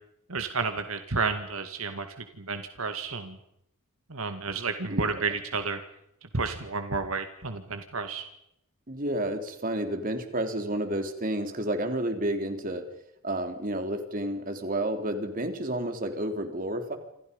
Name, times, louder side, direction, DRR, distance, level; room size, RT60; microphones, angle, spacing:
voice 1, 0.3-2.1 2.4-3.4 4.1-5.8 6.3-8.3, right 4 dB, 75° right, 7 dB, 2.1 m, -31 dB
voice 2, 4.9-5.3 8.9-12.8 13.2-17.0, right 1 dB, 40° right, 6 dB, 3.6 m, -31 dB
28.0 x 27.5 x 5.4 m, 0.77 s
head